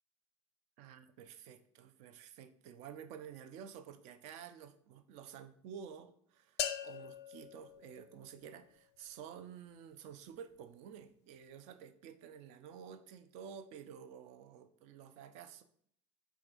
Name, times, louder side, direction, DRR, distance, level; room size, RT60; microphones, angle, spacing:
voice 1, 0.8-15.6, right 8 dB, 50° right, 10 dB, 0.5 m, -51 dB
sound 1, 6.6-8.6, left 10 dB, 65° left, 0.4 m, -41 dB
4.7 x 3.5 x 2.5 m, 0.64 s
figure-of-eight pair, 75°, 15 cm